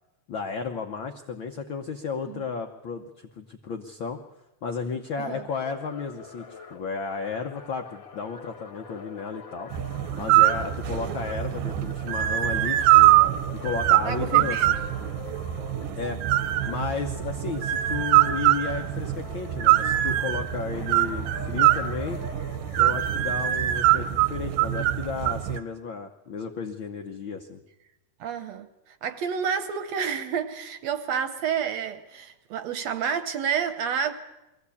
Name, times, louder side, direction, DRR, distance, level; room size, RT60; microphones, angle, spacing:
voice 1, 0.3-4.2 4.6-9.7 10.2-13.1 13.5-14.8 16.0-16.2 16.7-22.2 22.8-27.6, left 5 dB, 80° left, 1.0 m, -33 dB
sound 1, 5.5-16.0 16.3-20.3 20.7-22.9, left 6 dB, 50° left, 1.6 m, -45 dB
sound 2, 9.7-25.6, right 14 dB, 90° right, 2.5 m, -23 dB
voice 2, 14.0-14.7 16.1-16.4 28.2-34.1, right 7 dB, 70° right, 1.8 m, -30 dB
22.5 x 15.5 x 8.4 m
omnidirectional pair, 3.6 m